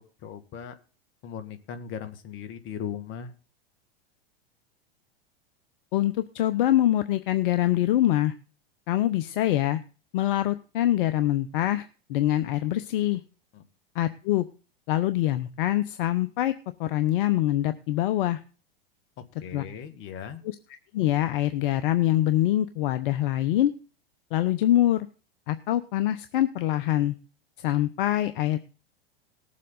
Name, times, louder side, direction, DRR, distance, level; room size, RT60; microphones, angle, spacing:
voice 1, 0.2-0.8 1.2-3.3 13.5-13.6 19.2-20.4, left 8 dB, 40° left, 10 dB, 2.2 m, -38 dB
voice 2, 5.9-8.3 8.9-9.8 10.1-13.2 13.9-14.4 14.9-16.5 16.8-18.4 19.5-19.6 20.4-20.6 20.9-23.7 24.3-25.1 25.5-27.1 27.6-28.6, left 13 dB, 60° left, 12 dB, 1.0 m, -24 dB
19.0 x 7.6 x 4.0 m, 0.36 s
hypercardioid pair, 105°, 29 cm